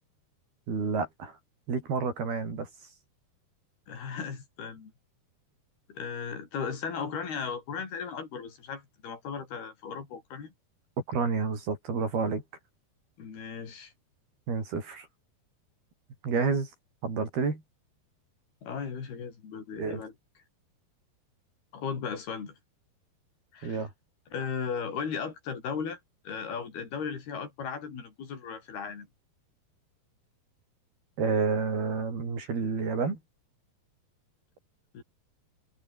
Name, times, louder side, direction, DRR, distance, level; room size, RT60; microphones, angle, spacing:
voice 1, 0.7-1.4 1.7-2.7 11.1-12.4 14.5-15.1 16.2-16.7 17.0-17.6 19.8-20.0 23.6-23.9 31.2-33.2, right 5 dB, 70° right, 8.2 m, -29 dB
voice 2, 3.9-4.9 5.9-10.5 13.2-13.9 18.6-20.1 21.7-22.6 23.5-23.9 24.3-26.0 26.2-29.1 34.9-35.0, left 6 dB, 70° left, 6.4 m, -36 dB
omnidirectional pair, 4.7 m